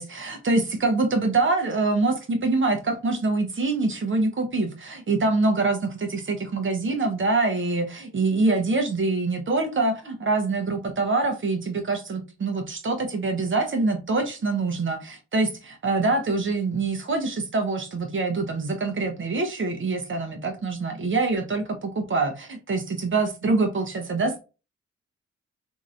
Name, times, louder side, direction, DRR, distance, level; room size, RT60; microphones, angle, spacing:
voice 1, 0.0-24.4, right 3 dB, 40° right, 5 dB, 0.8 m, -25 dB
2.9 x 2.7 x 2.5 m, 0.31 s
supercardioid pair, 50°, 29 cm